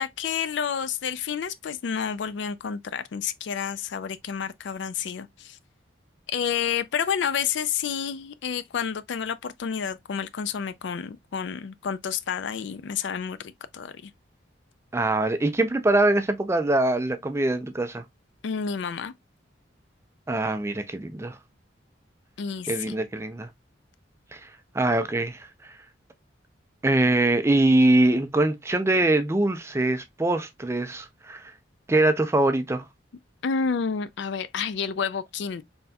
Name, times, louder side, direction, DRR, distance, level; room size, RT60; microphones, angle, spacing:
voice 1, 0.0-5.6 6.3-14.1 18.4-19.1 22.4-22.9 33.4-35.6, left 7 dB, 70° left, 0.4 m, -30 dB
voice 2, 14.9-18.0 20.3-21.4 22.7-23.5 24.3-24.5 24.7-25.5 26.8-31.5 31.9-32.9, right 2 dB, 15° right, 0.4 m, -23 dB
4.2 x 3.4 x 2.2 m
head